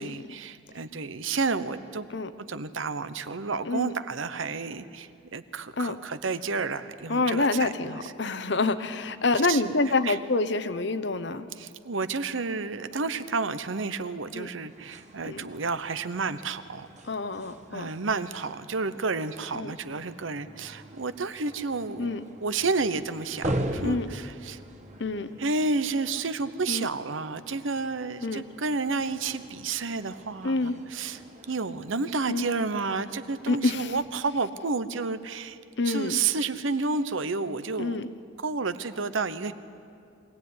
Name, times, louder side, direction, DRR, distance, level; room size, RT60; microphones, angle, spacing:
voice 1, 0.0-2.1 2.5-8.1 9.5-9.7 10.0-10.2 11.6-16.9 17.7-22.1 22.4-24.6 25.4-31.2 31.5-35.6 35.8-38.0 38.4-39.5, right 4 dB, 75° right, 13 dB, 0.9 m, -31 dB
voice 2, 7.1-11.5 14.3-14.5 15.2-15.4 17.1-17.9 19.5-19.7 22.0-22.2 23.8-24.1 25.0-25.3 26.7-26.9 28.2-28.4 30.4-30.8 32.3-32.5 33.5-33.9 35.8-36.2 37.7-38.1, left 3 dB, 60° left, 12 dB, 0.9 m, -27 dB
sound 1, 14.7-34.1, right 1 dB, 35° right, 1.6 m, -41 dB
23.5 x 16.5 x 9.7 m, 2.4 s
head